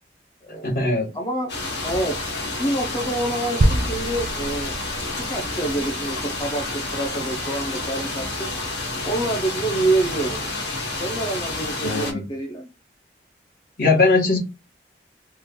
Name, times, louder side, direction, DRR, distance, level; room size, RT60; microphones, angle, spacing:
voice 1, 0.6-1.1 11.8-12.3 13.8-14.4, left 3 dB, 50° left, 1 dB, 1.1 m, -20 dB
voice 2, 1.1-1.5 1.8-4.7 5.3-8.5 9.0-10.4 11.0-12.7, right 2 dB, 25° left, 0 dB, 0.5 m, -27 dB
sound 1, 1.5-12.1, left 2 dB, 75° left, 1.4 m, -29 dB
sound 2, 3.6-8.0, right 1 dB, 45° right, 0.4 m, -27 dB
3.0 x 2.2 x 3.5 m, 0.27 s
head